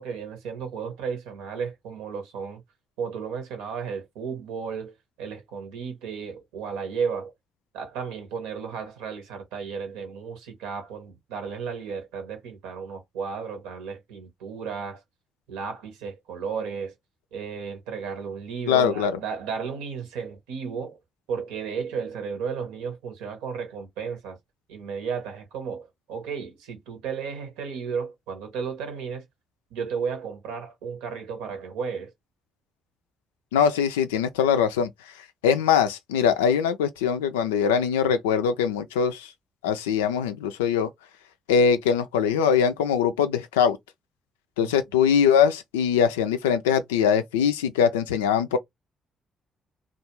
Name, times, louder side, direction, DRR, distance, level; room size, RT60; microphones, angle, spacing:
voice 1, 0.0-2.6 3.0-7.3 7.7-15.0 15.5-16.9 17.3-21.0 21.3-24.4 24.7-29.2 29.7-32.1 44.6-44.7, right 6 dB, 80° right, 0.9 m, -33 dB
voice 2, 18.7-19.1 33.5-34.9 35.4-39.3 39.6-40.9 41.5-43.8 44.6-48.6, left 7 dB, 85° left, 0.3 m, -22 dB
2.4 x 2.3 x 2.9 m
hypercardioid pair, 45°, 0 cm